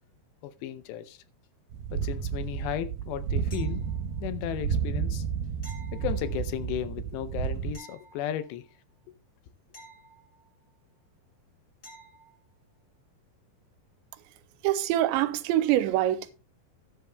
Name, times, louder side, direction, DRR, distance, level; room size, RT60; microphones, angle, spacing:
voice 1, 0.4-1.2 1.9-3.8 4.2-5.2 5.9-8.6, left 11 dB, 80° left, 2.8 m, -35 dB
sound 1, 1.7-7.8, right 7 dB, 70° right, 2.6 m, -31 dB
sound 2, 3.5-4.3 5.6-6.7 7.7-8.8 9.7-10.8 11.8-12.4 15.2-15.3, right 1 dB, 40° left, 0.9 m, -52 dB
voice 2, 14.6-16.3, right 13 dB, 90° right, 3.0 m, -25 dB
12.5 x 12.0 x 2.2 m
omnidirectional pair, 5.1 m